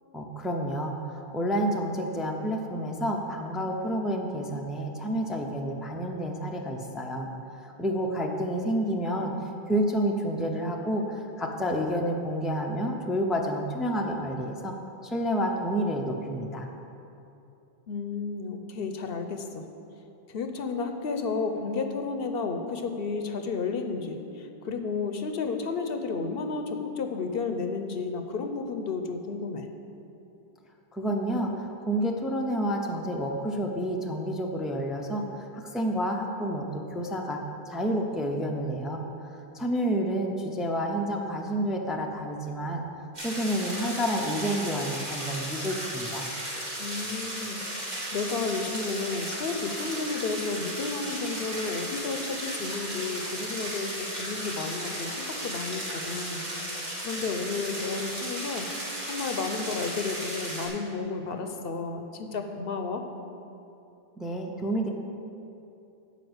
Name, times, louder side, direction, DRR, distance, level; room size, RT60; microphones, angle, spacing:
voice 1, 0.1-7.3 7.6-14.7 15.0-16.7 30.9-39.1 39.5-42.8 43.2-46.3 64.2-64.9, equal, ahead, 1 dB, 0.6 m, -29 dB
voice 2, 17.9-19.6 20.3-29.7 46.8-47.6 48.1-58.7 59.1-63.0, left 4 dB, 70° left, 6 dB, 0.9 m, -32 dB
sound 1, 43.1-60.7, right 1 dB, 45° right, 2.2 m, -35 dB
9.3 x 5.7 x 8.0 m, 2.8 s
omnidirectional pair, 1.0 m